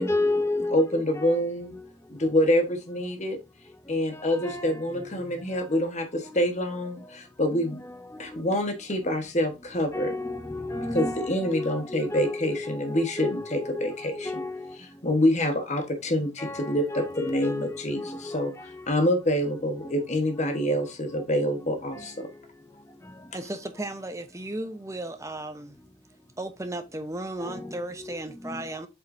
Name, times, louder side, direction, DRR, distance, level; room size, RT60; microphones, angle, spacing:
voice 1, 0.0-1.4 1.7-1.9 4.1-5.3 6.2-6.4 7.5-8.6 9.9-14.8 16.4-18.9 19.8-19.9 21.9-22.1 27.4-28.2 28.4-28.9, left 2 dB, 15° left, 0.7 m, -33 dB
voice 2, 0.7-1.8 2.1-3.4 3.9-7.8 8.2-10.1 10.9-14.3 15.0-22.3, left 1 dB, 35° left, 1.3 m, -26 dB
voice 3, 23.3-25.8 26.4-28.9, right 1 dB, 15° right, 0.8 m, -35 dB
7.5 x 5.5 x 2.7 m
head